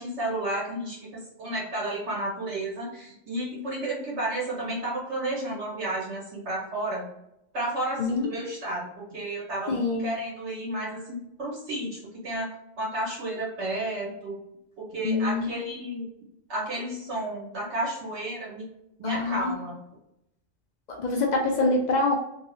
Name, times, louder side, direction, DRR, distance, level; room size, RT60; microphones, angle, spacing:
voice 1, 0.0-7.0 7.5-12.5 12.8-14.4 14.8-16.0 16.5-18.6 19.0-19.8, right 1 dB, 60° right, -4 dB, 1.5 m, -32 dB
voice 2, 9.7-10.1 15.0-15.5 19.0-19.5 21.0-22.1, left 3 dB, 85° left, 1 dB, 0.4 m, -25 dB
3.0 x 2.6 x 2.7 m, 0.81 s
omnidirectional pair, 1.3 m